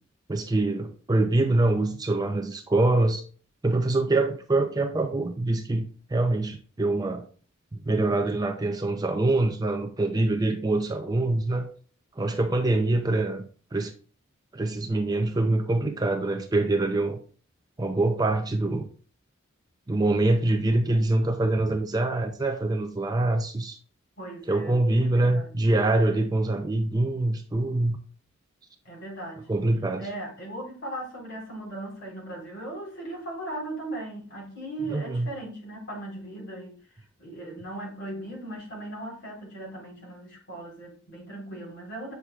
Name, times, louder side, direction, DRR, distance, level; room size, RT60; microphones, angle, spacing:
voice 1, 0.3-3.2 3.6-7.3 7.7-11.7 12.2-13.4 13.7-13.9 14.5-17.2 17.8-18.9 19.9-23.8 24.5-28.0 29.5-30.0 34.9-35.3, right 2 dB, 20° right, 5 dB, 0.5 m, -24 dB
voice 2, 24.2-25.5 28.8-29.5 30.0-36.7 37.2-42.1, right 1 dB, 55° left, -2 dB, 3.6 m, -38 dB
8.1 x 5.8 x 2.3 m, 0.42 s
head